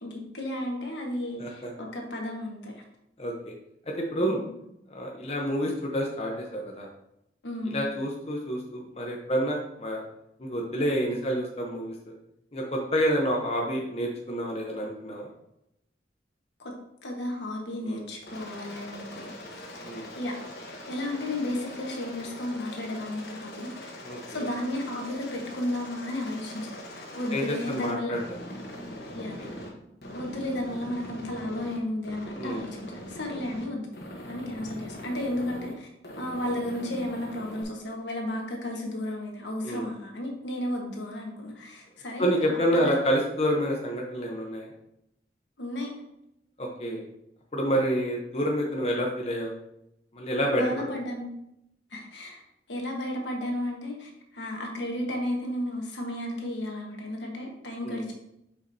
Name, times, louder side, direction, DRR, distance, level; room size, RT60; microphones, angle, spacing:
voice 1, 0.0-2.7 4.2-4.5 7.4-7.9 16.6-16.7 17.0-20.5 20.9-26.8 27.1-28.1 29.1-29.4 30.1-33.9 34.3-35.9 36.1-43.0 45.6-45.9 50.5-51.3 51.9-52.4 52.7-58.1, left 1 dB, 80° left, 1 dB, 1.4 m, -33 dB
voice 2, 1.4-1.7 3.2-3.3 4.0-4.4 4.9-6.9 7.7-10.0 10.4-11.9 12.5-15.3 17.9-18.0 19.8-20.0 24.0-24.4 27.3-28.2 29.4-29.5 32.4-32.6 39.6-39.9 42.2-44.7 46.6-47.0 47.5-49.5 50.1-50.6 57.8-58.0, equal, 35° left, 0 dB, 0.8 m, -28 dB
Aircraft, 18.2-29.7 30.0-31.8 32.0-33.7 33.9-35.7 36.0-37.6, left 1 dB, 60° left, 1.2 m, -42 dB
7.1 x 5.2 x 2.8 m, 0.82 s
head